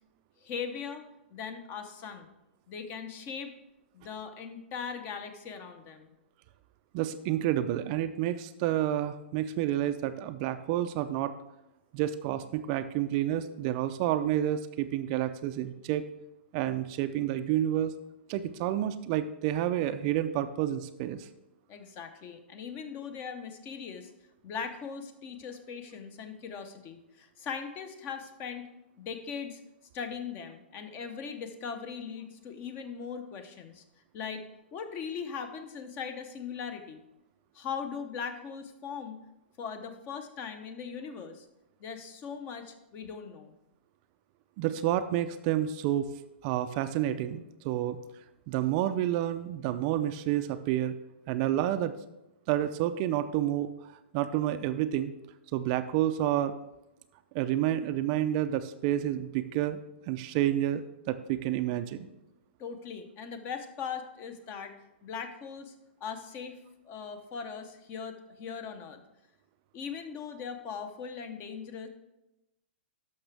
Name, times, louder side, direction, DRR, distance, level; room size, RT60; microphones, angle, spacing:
voice 1, 0.4-2.3 2.7-3.6 3.9-6.1 21.7-24.1 24.4-28.7 29.0-29.6 29.9-33.8 34.1-34.4 34.7-37.0 37.5-39.2 39.6-41.5 41.8-43.5 62.6-64.7 65.0-65.7 66.0-66.6 66.8-69.0 69.7-71.9, left 6 dB, 30° left, 8 dB, 0.9 m, -39 dB
voice 2, 6.9-11.3 11.9-16.0 16.5-18.0 18.3-21.3 44.6-46.1 46.4-48.0 48.5-51.0 51.3-52.0 52.5-53.7 54.1-55.1 55.5-56.5 57.3-59.8 60.1-62.1, right 12 dB, 40° right, 10 dB, 0.4 m, -29 dB
12.0 x 5.9 x 3.4 m, 0.93 s
hypercardioid pair, 135°, 6 cm